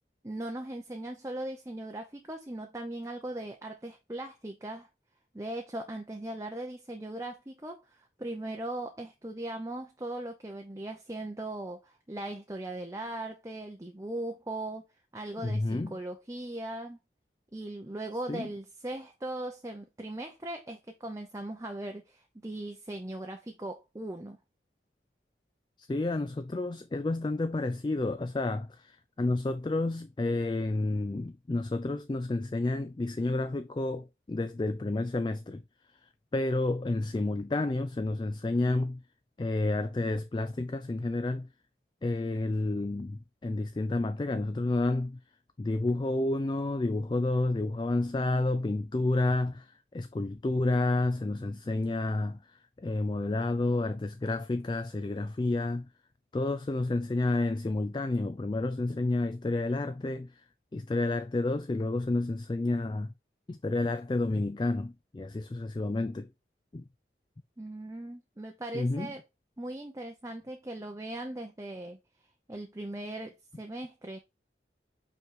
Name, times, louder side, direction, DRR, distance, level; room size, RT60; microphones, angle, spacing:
voice 1, 0.2-4.9 5.3-14.8 15.1-17.0 17.5-24.4 67.6-69.2 69.6-72.0 72.5-74.2, right 1 dB, 20° right, 0.7 m, -39 dB
voice 2, 15.4-16.0 18.3-18.5 25.8-35.6 36.0-39.0 39.4-41.5 42.0-45.2 45.6-55.9 56.3-60.4 60.7-63.1 63.5-66.3 66.7-66.8 68.7-69.1, left 2 dB, 25° left, 0.3 m, -30 dB
5.6 x 4.5 x 3.7 m
head